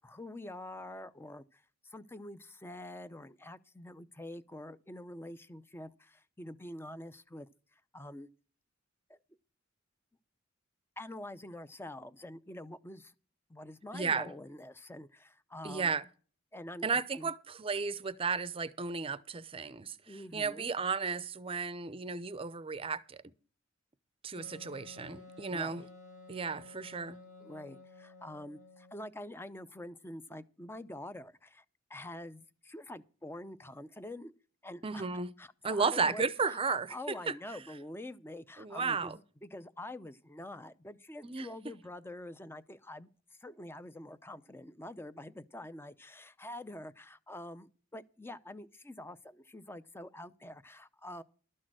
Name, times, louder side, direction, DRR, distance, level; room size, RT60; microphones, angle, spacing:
voice 1, 0.0-7.5 7.9-8.3 9.1-9.2 11.0-13.1 13.5-15.9 16.5-17.3 20.1-20.7 25.5-25.9 27.4-31.6 31.9-34.3 34.6-35.1 35.4-43.1 43.4-51.2, left 1 dB, 10° left, 0.5 m, -46 dB
voice 2, 13.9-14.3 15.6-16.0 16.8-23.2 24.2-25.9 26.3-27.2 34.8-35.3 35.6-36.9 37.3-37.4 38.6-39.2 41.2-41.5, right 5 dB, 30° right, 0.6 m, -34 dB
Wind instrument woodwind instrument, 24.4-29.0, left 3 dB, 40° left, 1.5 m, -53 dB
12.5 x 6.5 x 6.1 m
head